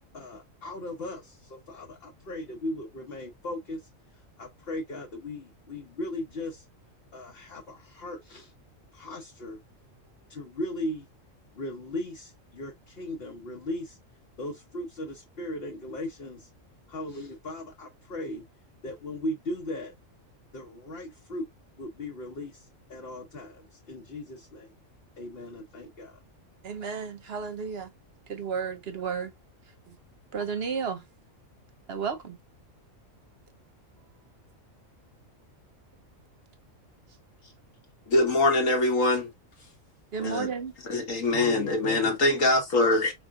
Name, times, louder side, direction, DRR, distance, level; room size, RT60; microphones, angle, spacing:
voice 1, 0.1-3.8 4.4-6.6 7.1-8.5 8.9-9.6 10.3-11.1 11.5-14.0 14.4-16.5 16.9-18.4 18.8-19.9 20.5-21.5 21.8-24.7 25.2-26.2 41.2-42.2, left 1 dB, 50° left, 1.0 m, -37 dB
voice 2, 26.6-27.9 28.3-29.3 29.9-30.0 30.3-31.0 31.9-32.4 40.1-40.7, right 6 dB, 55° right, 0.9 m, -32 dB
voice 3, 38.1-39.3 40.2-40.5 40.9-43.1, left 2 dB, 85° left, 2.0 m, -23 dB
5.0 x 3.8 x 2.3 m
omnidirectional pair, 1.3 m